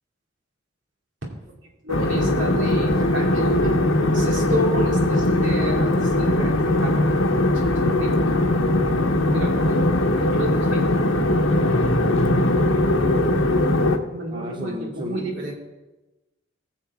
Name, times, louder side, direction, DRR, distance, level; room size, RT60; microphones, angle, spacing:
voice 1, 1.8-3.8 4.1-8.1 9.3-10.9 14.1-15.5, equal, 65° right, -1 dB, 2.6 m, -31 dB
sound 1, 1.9-14.0, left 1 dB, 85° left, 1.2 m, -20 dB
voice 2, 14.3-15.5, left 1 dB, 25° right, 3 dB, 0.8 m, -33 dB
19.5 x 7.1 x 3.7 m, 1.1 s
head